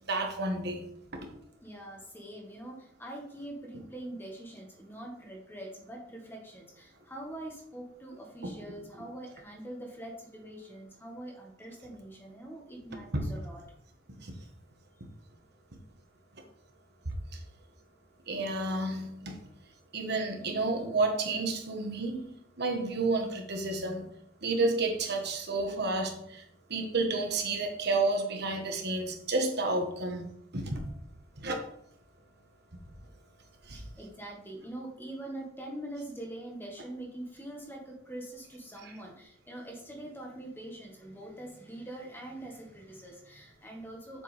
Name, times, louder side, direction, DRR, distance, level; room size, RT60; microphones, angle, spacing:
voice 1, 0.1-0.8 13.1-13.2 14.2-14.3 17.1-17.2 18.3-19.4 19.9-24.0 24.4-26.4 26.7-30.8 31.4-31.6 33.7-33.8 38.8-38.9, right 3 dB, 60° right, 3 dB, 1.6 m, -31 dB
voice 2, 1.6-13.6 33.7-44.2, right 1 dB, 10° left, 0 dB, 1.9 m, -44 dB
7.5 x 7.1 x 3.6 m, 0.69 s
head